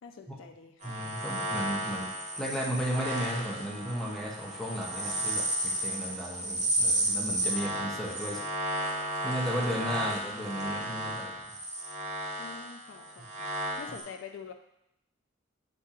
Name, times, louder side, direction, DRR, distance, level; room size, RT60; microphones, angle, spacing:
voice 1, 0.0-0.9 10.0-10.1 12.4-14.5, left 6 dB, 75° left, 5 dB, 0.4 m, -46 dB
voice 2, 0.8-2.1 2.4-8.4 9.2-11.4, equal, 5° left, -4 dB, 0.7 m, -34 dB
sound 1, 0.8-14.0, right 1 dB, 40° right, 0.9 m, -33 dB
6.9 x 2.7 x 2.4 m, 0.81 s
head